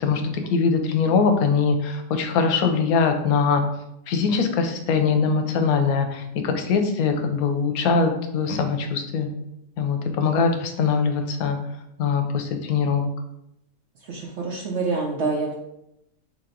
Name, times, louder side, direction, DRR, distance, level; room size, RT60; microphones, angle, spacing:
voice 1, 0.0-3.6 4.1-9.3 9.8-11.6 12.0-13.1, left 5 dB, 90° left, 6 dB, 1.1 m, -22 dB
voice 2, 14.0-15.6, right 3 dB, 65° right, -1 dB, 0.8 m, -27 dB
3.4 x 2.9 x 3.7 m, 0.83 s
omnidirectional pair, 1.5 m